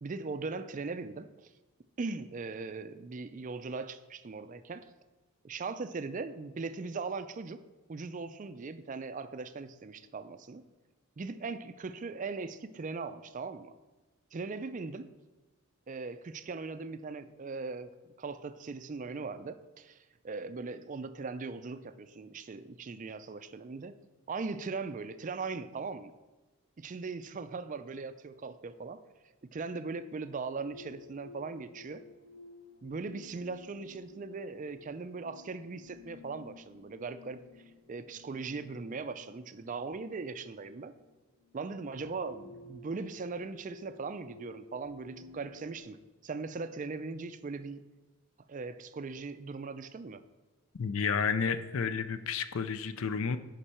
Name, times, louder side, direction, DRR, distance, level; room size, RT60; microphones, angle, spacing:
voice 1, 0.0-1.5 2.0-4.9 5.4-7.6 7.9-10.7 11.2-13.7 14.3-15.1 15.9-17.9 18.2-23.9 24.3-26.1 26.8-29.0 29.5-32.0 32.8-37.4 37.9-40.9 41.5-46.0 46.2-47.8 48.5-50.2, right 4 dB, 35° right, 11 dB, 0.4 m, -39 dB
sound 1, 30.5-45.8, left 3 dB, 90° left, 2.4 m, -54 dB
voice 2, 50.7-53.4, left 6 dB, 65° left, 12 dB, 0.5 m, -31 dB
9.9 x 5.3 x 4.3 m, 1.1 s
head